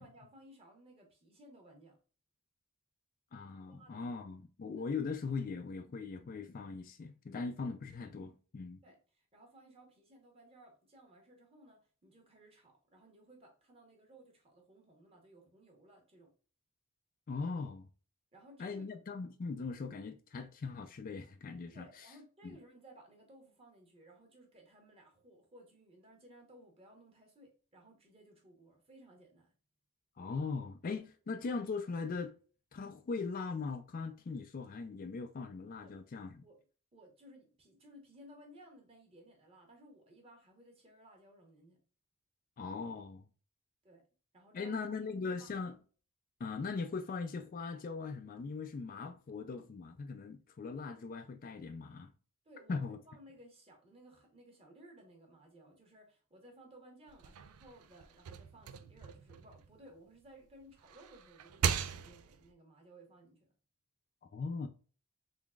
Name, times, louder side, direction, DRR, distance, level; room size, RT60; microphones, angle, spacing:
voice 1, 0.0-2.0 3.7-4.1 4.6-5.0 8.8-16.3 18.3-18.9 21.7-29.5 35.8-36.0 36.4-36.6 36.9-41.8 43.8-44.0 44.3-44.8 45.2-45.5 52.4-63.5, right 1 dB, 25° right, 1.1 m, -59 dB
voice 2, 3.3-8.8 17.3-17.9 18.6-21.9 22.4-22.6 30.2-32.3 32.7-36.4 42.6-43.2 44.5-45.7 46.4-52.1 52.7-53.0 64.3-64.7, left 4 dB, 40° left, 0.3 m, -40 dB
sound 1, 57.1-60.3 60.7-62.5, right 7 dB, 85° right, 0.4 m, -39 dB
3.7 x 3.5 x 2.3 m
head